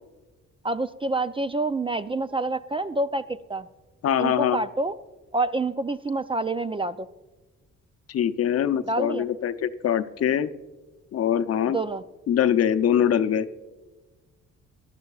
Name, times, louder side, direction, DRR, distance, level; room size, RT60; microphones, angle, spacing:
voice 1, 0.6-3.7 4.2-4.9 5.3-7.1 8.9-9.2 11.7-12.0, right 2 dB, 20° right, 12 dB, 0.4 m, -27 dB
voice 2, 4.0-4.6 8.1-10.5 11.1-11.8 12.3-13.5, left 9 dB, 55° left, 11 dB, 0.7 m, -23 dB
19.0 x 12.0 x 2.4 m, 1.2 s
cardioid pair, 90°, 30 cm